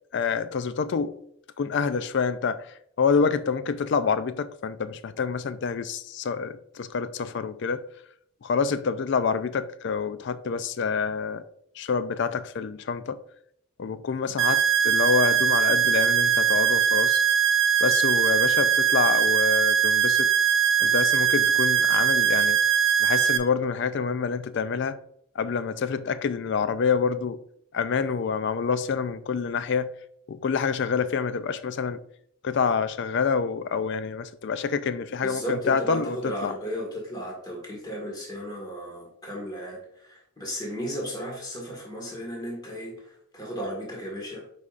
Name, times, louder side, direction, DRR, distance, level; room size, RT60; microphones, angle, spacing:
voice 1, 0.1-1.2 1.6-7.8 8.4-11.4 11.8-13.2 13.8-17.2 17.8-20.3 20.8-22.6 23.0-25.0 25.4-27.4 27.7-29.9 30.3-32.0 32.4-36.6, left 5 dB, 55° left, 0.4 m, -27 dB
sound 1, 14.4-23.4, right 8 dB, 70° right, 0.8 m, -21 dB
voice 2, 35.2-44.4, equal, 20° left, 1.7 m, -35 dB
8.2 x 5.0 x 2.5 m
head